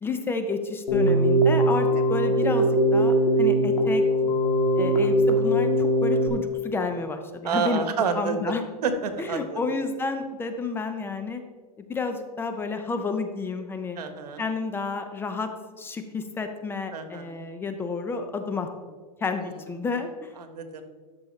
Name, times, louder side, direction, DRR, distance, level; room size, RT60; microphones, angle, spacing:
voice 1, 0.0-4.0 4.8-7.9 8.1-8.6 9.2-11.4 11.9-14.0 14.4-15.5 15.8-18.7 19.2-20.3, left 4 dB, 10° left, 7 dB, 0.5 m, -30 dB
Keyboard (musical), 0.9-6.3, equal, 90° left, 1.9 m, -21 dB
voice 2, 7.4-8.5 8.8-9.6 13.9-14.4 16.9-17.3 20.5-20.8, right 6 dB, 90° right, 8 dB, 1.2 m, -28 dB
13.0 x 6.1 x 3.2 m, 1.5 s
supercardioid pair, 145°, 20 cm